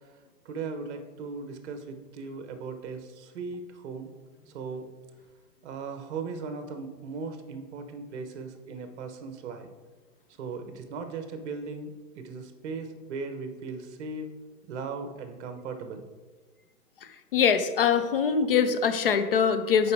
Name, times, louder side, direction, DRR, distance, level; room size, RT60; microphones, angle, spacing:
voice 1, 0.4-4.1 4.5-4.8 5.6-9.7 10.4-14.3 14.7-16.0, right 4 dB, 45° right, 7 dB, 1.0 m, -38 dB
voice 2, 17.3-19.9, left 6 dB, 40° left, 9 dB, 0.4 m, -23 dB
6.7 x 5.0 x 4.7 m, 1.4 s
hypercardioid pair, 145°, 49 cm